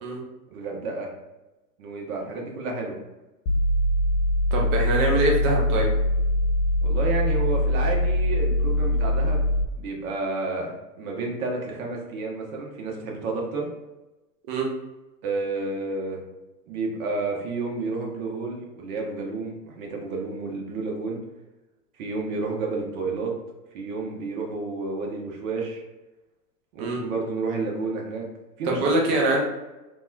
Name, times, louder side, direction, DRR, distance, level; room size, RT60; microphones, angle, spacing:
voice 1, 0.5-1.1 1.8-3.0 6.8-9.5 9.8-10.7 11.0-13.7 15.2-16.2 16.7-21.2 22.0-23.3 23.7-25.8 26.7-28.2 28.6-29.3, right 3 dB, 55° right, 0 dB, 0.9 m, -30 dB
sound 1, 3.5-9.6, left 1 dB, 65° left, 0.7 m, -22 dB
voice 2, 4.5-5.9 14.5-14.7 26.8-27.0 28.6-29.4, right 2 dB, 20° right, 0 dB, 0.3 m, -23 dB
3.0 x 2.2 x 2.3 m, 1.0 s
hypercardioid pair, 105°, 48 cm